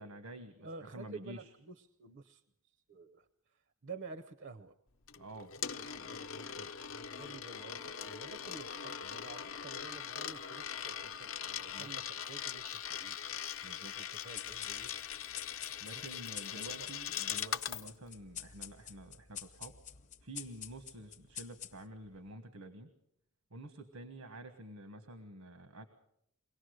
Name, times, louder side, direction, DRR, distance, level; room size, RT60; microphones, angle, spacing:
voice 1, 0.0-0.6 0.9-1.4 5.2-5.5 11.7-11.9 13.6-14.0 15.8-19.8 20.2-22.9 23.5-25.8, right 1 dB, 85° right, 7 dB, 1.5 m, -49 dB
voice 2, 0.6-4.7 5.8-6.8 7.1-13.2 14.0-14.9 15.9-16.0 16.5-16.9 17.3-17.4 17.8-18.0, right 4 dB, 55° right, 11 dB, 0.7 m, -51 dB
Coin (dropping), 5.1-17.9, left 8 dB, 65° left, 0.8 m, -41 dB
sound 1, 14.3-22.1, left 9 dB, 35° left, 0.7 m, -48 dB
23.5 x 17.5 x 6.5 m, 0.75 s
head